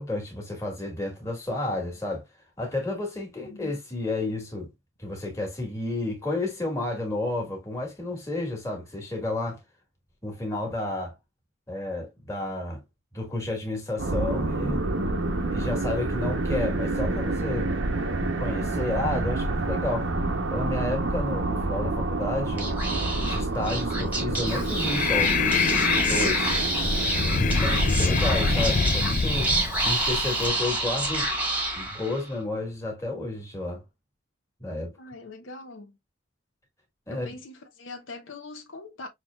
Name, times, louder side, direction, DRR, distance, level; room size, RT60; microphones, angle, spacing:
voice 1, 0.0-2.2 2.6-4.7 5.0-9.6 10.2-11.1 11.7-12.8 13.1-14.8 15.5-17.7 18.0-18.1 18.4-20.1 20.5-22.8 23.2-25.7 26.0-26.5 27.3-29.5 29.8-31.3 31.8-33.8 34.6-34.9 37.1-37.3, left 2 dB, 15° left, 1.6 m, -31 dB
voice 2, 3.4-3.7 27.4-27.7 35.0-36.0 37.1-39.1, left 2 dB, 85° left, 0.9 m, -42 dB
sound 1, 14.0-28.7, right 2 dB, 75° right, 0.8 m, -28 dB
Speech / Whispering, 22.5-32.3, right 2 dB, 10° right, 1.2 m, -28 dB
Breathing, 24.5-30.5, left 5 dB, 40° left, 0.4 m, -25 dB
6.0 x 2.9 x 2.2 m
head